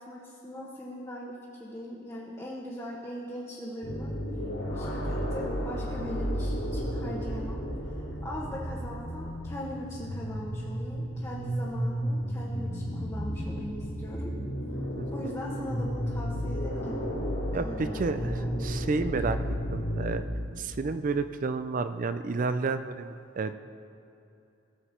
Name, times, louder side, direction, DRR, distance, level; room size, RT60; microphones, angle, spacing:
voice 1, 0.0-4.1 4.7-14.3 15.1-17.1 17.5-18.5, equal, 15° left, -5 dB, 1.1 m, -40 dB
sound 1, 3.8-20.2, equal, 70° left, 3.1 m, -33 dB
voice 2, 15.0-15.3 17.5-19.4 19.7-20.2 20.6-23.5, right 4 dB, 40° right, 11 dB, 0.4 m, -31 dB
17.5 x 7.0 x 4.4 m, 2.8 s
head